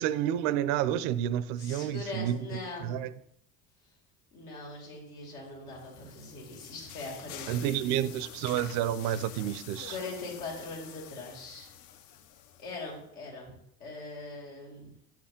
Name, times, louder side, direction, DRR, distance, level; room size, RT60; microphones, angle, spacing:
voice 1, 0.0-2.4 2.8-3.1 7.5-10.0, right 11 dB, 60° right, 0.5 m, -30 dB
voice 2, 1.6-2.9 4.3-8.1 9.9-11.7 12.6-14.9, left 3 dB, 80° left, 2.2 m, -41 dB
sound 1, 5.4-13.0, left 11 dB, 60° left, 0.6 m, -48 dB
6.8 x 4.5 x 3.7 m
hypercardioid pair, 70°, 45 cm